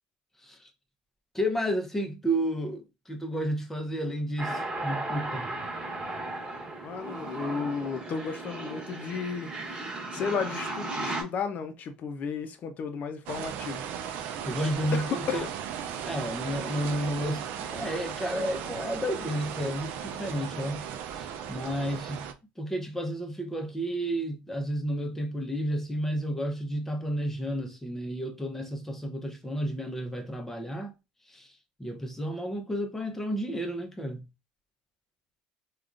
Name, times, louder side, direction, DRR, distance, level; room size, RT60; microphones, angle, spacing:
voice 1, 1.3-5.5 14.1-15.5 16.0-22.3 22.6-30.9 31.3-31.5 31.8-34.3, equal, 10° left, 0.8 m, -32 dB
sound 1, 4.4-11.2, right 2 dB, 30° right, 1.3 m, -35 dB
voice 2, 6.8-9.5 10.1-13.9 14.9-15.5, left 6 dB, 50° left, 0.6 m, -33 dB
sound 2, 13.3-22.3, right 8 dB, 70° right, 0.4 m, -36 dB
3.5 x 2.4 x 2.5 m
supercardioid pair, 90°, 3 cm